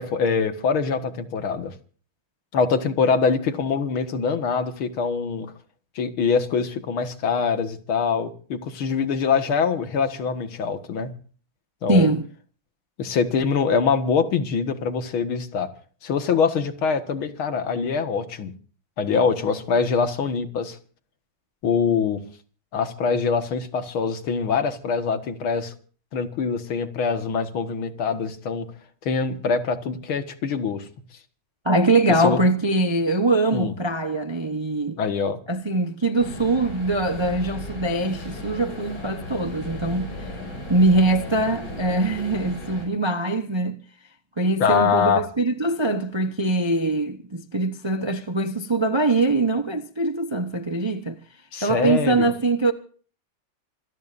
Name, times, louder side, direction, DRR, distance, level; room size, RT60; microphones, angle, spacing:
voice 1, 0.0-1.7 2.5-5.5 6.0-11.1 11.8-12.1 13.0-15.7 16.0-18.5 19.0-20.8 21.6-22.2 22.7-25.7 26.1-28.7 29.0-30.9 32.2-32.4 33.5-33.7 35.0-35.4 44.6-45.3 51.5-52.3, left 5 dB, 90° left, 2.4 m, -24 dB
voice 2, 11.9-12.3 31.6-35.0 35.5-40.3 40.7-43.8 44.4-51.2 51.6-52.7, right 2 dB, 30° right, 0.5 m, -22 dB
sound 1, 36.2-42.9, left 1 dB, 70° left, 7.4 m, -35 dB
26.5 x 18.0 x 2.6 m
omnidirectional pair, 2.2 m